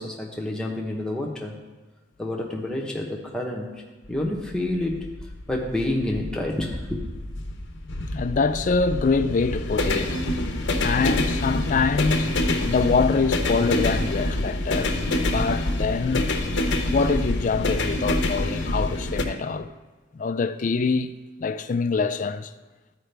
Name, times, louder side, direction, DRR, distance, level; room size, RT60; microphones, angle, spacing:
voice 1, 0.0-1.5 2.2-3.7 4.1-5.0 5.5-7.0, left 1 dB, 5° left, 0.9 m, -28 dB
sound 1, 4.0-19.2, left 1 dB, 60° left, 0.8 m, -26 dB
voice 2, 8.1-10.2 10.8-12.3 12.6-15.0 15.3-16.3 16.9-19.7 20.1-21.1 21.4-22.5, left 4 dB, 40° left, 0.3 m, -24 dB
13.0 x 4.9 x 3.3 m
head